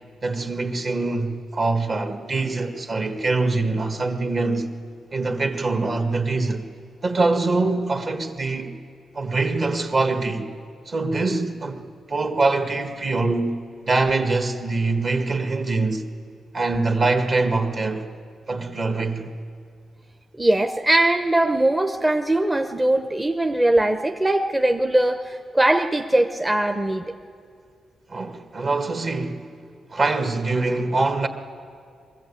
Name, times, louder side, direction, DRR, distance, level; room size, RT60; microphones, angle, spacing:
voice 1, 0.2-4.7 5.1-6.6 7.0-8.7 9.1-10.5 10.9-11.8 12.1-13.6 13.9-16.1 16.5-18.1 18.5-19.3 28.1-29.5 29.9-31.3, right 3 dB, 50° right, 1.7 m, -23 dB
voice 2, 20.4-27.1, right 1 dB, 15° right, 0.8 m, -21 dB
22.0 x 14.5 x 8.4 m
cardioid pair, 85°, 0 cm